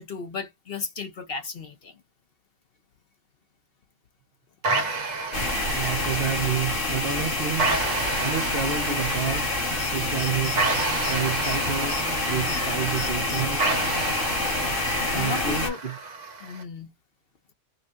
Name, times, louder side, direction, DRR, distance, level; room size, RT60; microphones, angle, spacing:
voice 1, 0.0-2.0 14.9-15.8 16.4-16.9, left 4 dB, 50° left, 1.0 m, -35 dB
sound 1, 4.6-16.6, right 3 dB, 80° right, 1.5 m, -31 dB
sound 2, 5.3-15.7, left 2 dB, 70° left, 2.2 m, -27 dB
voice 2, 5.7-7.8 8.2-9.5 9.9-10.6 11.1-12.0 12.3-13.6 15.1-15.9, right 8 dB, 55° right, 0.8 m, -29 dB
5.3 x 2.3 x 2.6 m
omnidirectional pair, 1.3 m